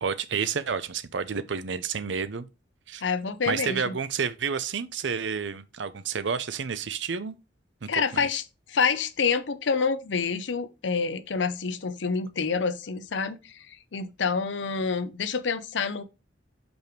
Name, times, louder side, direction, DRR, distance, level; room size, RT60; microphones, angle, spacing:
voice 1, 0.0-2.5 2.9-3.0 3.5-7.4 7.8-8.3, right 6 dB, 80° right, 0.6 m, -30 dB
voice 2, 3.0-3.9 7.9-8.4 8.7-16.0, left 5 dB, 80° left, 0.7 m, -27 dB
5.3 x 5.0 x 4.5 m
head